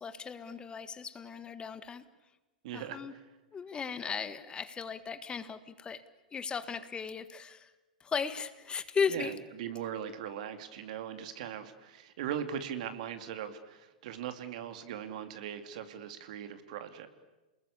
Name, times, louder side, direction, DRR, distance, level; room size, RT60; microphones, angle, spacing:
voice 1, 0.0-2.0 2.7-3.1 3.5-6.0 6.3-7.7 8.0-9.3, left 6 dB, 20° left, 12 dB, 1.6 m, -36 dB
voice 2, 2.6-3.0 9.1-17.1, right 9 dB, 60° right, 9 dB, 2.5 m, -40 dB
29.0 x 21.0 x 8.6 m, 1.1 s
hypercardioid pair, 100°, 4 cm